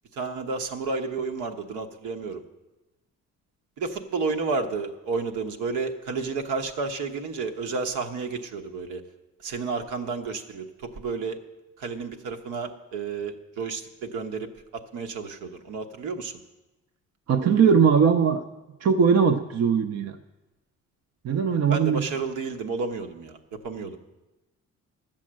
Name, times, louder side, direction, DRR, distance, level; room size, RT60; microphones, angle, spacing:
voice 1, 0.1-2.4 3.8-9.0 9.4-10.7 11.0-11.4 11.8-16.3 21.7-24.0, right 4 dB, 85° right, 5 dB, 1.2 m, -31 dB
voice 2, 17.3-18.4 18.8-20.2 21.2-22.0, right 6 dB, 55° right, 7 dB, 0.8 m, -20 dB
12.0 x 7.4 x 7.6 m, 1.0 s
cardioid pair, 90°, 30 cm